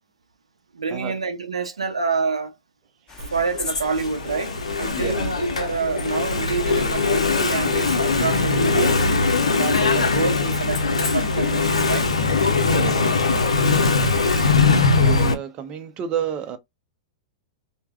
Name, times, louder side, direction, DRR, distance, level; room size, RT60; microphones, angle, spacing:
voice 1, 0.7-2.6 3.3-9.0 9.5-12.1 12.8-13.2, right 4 dB, 85° right, 0.6 m, -27 dB
sound 1, 3.1-11.6, left 4 dB, 20° left, 1.0 m, -40 dB
Engine / Mechanisms, 3.2-15.3, left 4 dB, 85° left, 0.5 m, -21 dB
voice 2, 4.9-5.3 12.5-13.0 13.7-13.8 15.0-16.6, right 8 dB, 35° right, 0.6 m, -31 dB
3.2 x 2.1 x 2.3 m
hypercardioid pair, 105°, 3 cm